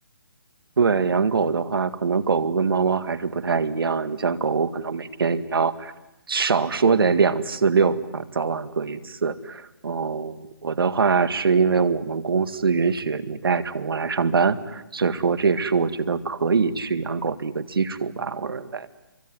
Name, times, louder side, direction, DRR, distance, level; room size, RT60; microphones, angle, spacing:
voice 1, 0.8-5.9 6.3-18.9, right 5 dB, 75° right, 12 dB, 2.0 m, -23 dB
25.0 x 24.0 x 9.6 m, 0.91 s
hypercardioid pair, 165°, 12 cm